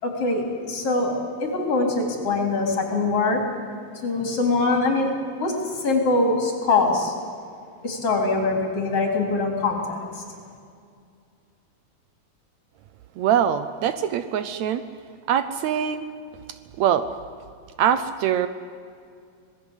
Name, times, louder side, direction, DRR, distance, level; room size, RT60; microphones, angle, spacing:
voice 1, 0.0-3.4 4.0-7.1 7.8-10.0, left 3 dB, 50° left, 2 dB, 4.5 m, -23 dB
voice 2, 13.2-14.8 15.3-16.1 16.8-17.1 17.8-18.5, right 9 dB, 75° right, 11 dB, 1.9 m, -23 dB
26.5 x 19.0 x 8.2 m, 2.3 s
omnidirectional pair, 3.5 m